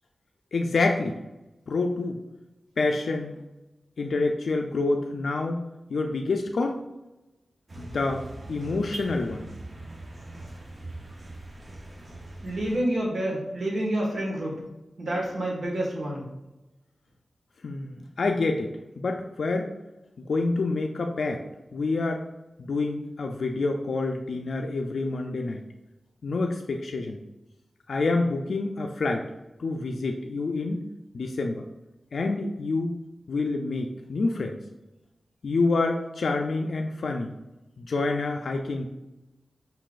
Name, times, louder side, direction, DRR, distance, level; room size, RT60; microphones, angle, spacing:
voice 1, 0.5-1.2 1.7-2.2 2.8-3.4 4.0-5.6 5.9-6.8 7.8-9.5 17.6-19.7 20.2-21.4 21.7-22.2 22.6-25.6 26.2-27.2 27.9-29.3 29.6-30.8 31.1-31.6 32.1-32.9 33.3-34.6 35.4-37.3 37.8-38.9, left 3 dB, 75° left, 3 dB, 0.3 m, -27 dB
sound 1, 7.7-12.8, right 2 dB, 40° right, 0.7 m, -41 dB
voice 2, 12.4-14.6 15.0-16.2, right 1 dB, 70° right, -3 dB, 1.5 m, -28 dB
5.4 x 3.8 x 2.4 m, 1.0 s
wide cardioid pair, 100°, 0 cm